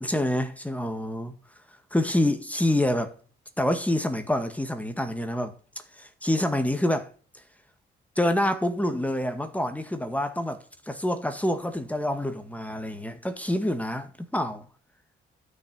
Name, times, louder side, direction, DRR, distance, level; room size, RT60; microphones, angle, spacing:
voice 1, 0.0-1.3 1.9-3.1 3.6-5.5 6.0-7.1 8.2-14.6, left 1 dB, 5° left, 1.9 m, -27 dB
13.0 x 6.5 x 9.0 m
cardioid pair, 90°, 20 cm